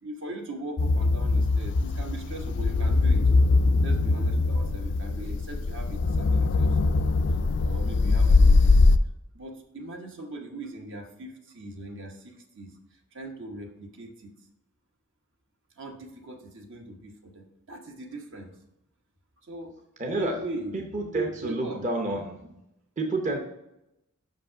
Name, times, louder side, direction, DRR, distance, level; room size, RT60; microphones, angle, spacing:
voice 1, 0.0-3.2 3.8-7.0 7.6-14.3 15.7-18.6 19.4-20.7 21.4-21.9, right 1 dB, 60° right, 3 dB, 1.1 m, -40 dB
sound 1, 0.8-9.0, left 3 dB, 55° left, 0.4 m, -22 dB
voice 2, 20.0-20.4 20.9-22.5 23.0-23.4, right 2 dB, 35° right, 2 dB, 0.8 m, -29 dB
5.9 x 5.2 x 5.6 m, 0.85 s
head